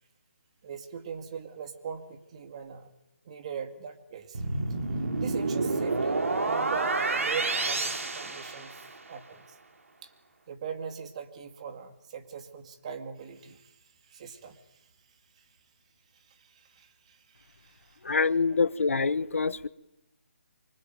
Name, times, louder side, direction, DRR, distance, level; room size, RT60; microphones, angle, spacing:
voice 1, 0.6-2.9 3.2-4.5 5.2-8.8 9.1-9.5 10.0-10.1 10.5-13.7 14.1-14.6 16.3-18.0, right 7 dB, 30° right, 2.2 m, -40 dB
sound 1, 4.3-9.1, right 3 dB, 80° right, 4.0 m, -29 dB
voice 2, 18.0-19.7, left 4 dB, 80° left, 1.2 m, -25 dB
25.0 x 24.0 x 9.2 m
hypercardioid pair, 170°, 7 cm